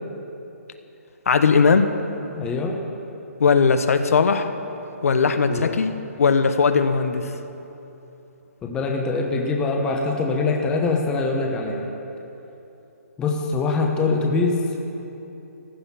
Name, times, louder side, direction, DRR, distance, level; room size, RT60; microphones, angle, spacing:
voice 1, 1.3-2.0 3.4-4.5 5.0-7.3, left 5 dB, 65° left, 8 dB, 1.0 m, -19 dB
voice 2, 2.4-2.8 5.4-5.8 8.6-11.9 13.2-14.6, left 3 dB, 10° left, 1 dB, 0.9 m, -23 dB
15.5 x 11.5 x 5.8 m, 3.0 s
hypercardioid pair, 165°, 8 cm